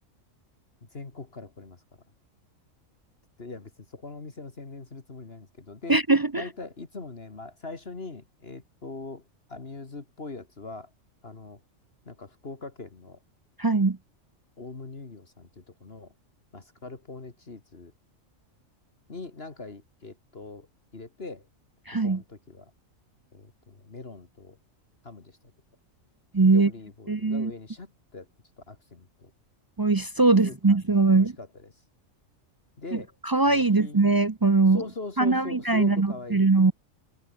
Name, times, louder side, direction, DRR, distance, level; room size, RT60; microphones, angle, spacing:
voice 1, 0.9-1.8 3.4-6.0 6.3-9.2 9.5-10.9 11.2-11.6 12.1-13.2 14.6-16.1 16.5-17.9 19.1-20.7 20.9-21.5 22.0-22.7 23.3-24.6 25.0-25.4 26.5-28.3 28.7-29.3 30.3-30.8 31.1-31.5 32.8-33.2 33.5-34.0 34.7-36.5, left 3 dB, 45° left, 2.4 m, -41 dB
voice 2, 5.9-6.4 13.6-14.0 21.9-22.2 26.3-26.7 27.1-27.5 29.8-31.3 32.9-34.8 35.2-36.7, right 3 dB, 35° right, 0.3 m, -21 dB
omnidirectional pair, 1.4 m